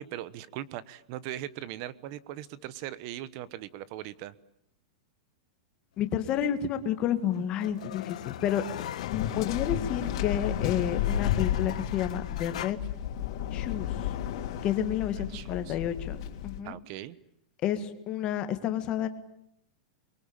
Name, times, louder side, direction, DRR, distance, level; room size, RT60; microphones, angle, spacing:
voice 1, 0.0-4.3 15.2-15.8 16.6-17.2, right 13 dB, 35° right, 17 dB, 1.1 m, -40 dB
voice 2, 6.0-8.8 9.1-12.8 13.5-14.1 14.6-16.8 17.6-19.1, left 10 dB, 25° left, 8 dB, 1.8 m, -30 dB
sound 1, 6.8-12.7, left 11 dB, 65° left, 1.5 m, -41 dB
Waves surf, 9.0-16.6, left 11 dB, 45° left, 3.3 m, -32 dB
28.0 x 23.5 x 8.9 m, 0.75 s
supercardioid pair, 175°, 4 cm